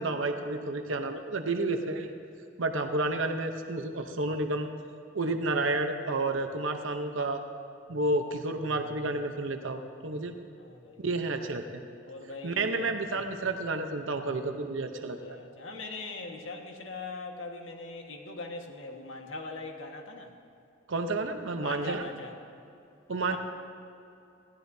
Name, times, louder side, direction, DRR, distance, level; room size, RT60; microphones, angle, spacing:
voice 1, 0.0-2.1 2.6-4.7 5.1-7.4 7.9-10.3 11.0-11.8 12.4-15.4 20.9-22.0 23.1-23.4, right 2 dB, 70° right, 5 dB, 0.8 m, -30 dB
voice 2, 10.6-11.0 12.1-12.9 15.1-20.3 21.6-22.3 23.3-23.4, left 3 dB, 70° left, 2 dB, 1.6 m, -41 dB
20.5 x 15.5 x 2.8 m, 2.6 s
head